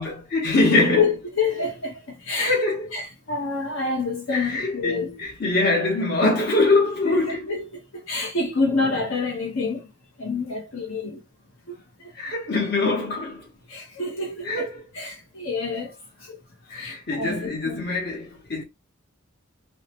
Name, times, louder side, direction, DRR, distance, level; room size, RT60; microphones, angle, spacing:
voice 1, 0.0-1.1 2.4-2.9 4.3-7.5 12.1-13.5 13.9-14.0 14.4-14.8 16.7-18.6, left 2 dB, 50° left, 1.0 m, -23 dB
voice 2, 1.0-2.5 2.9-5.1 7.0-7.6 8.1-9.9 10.2-11.2 11.7-11.8 13.7-14.6 14.9-15.9 16.2-16.4 16.7-17.7, left 4 dB, 75° left, 0.7 m, -27 dB
2.7 x 2.1 x 2.8 m
head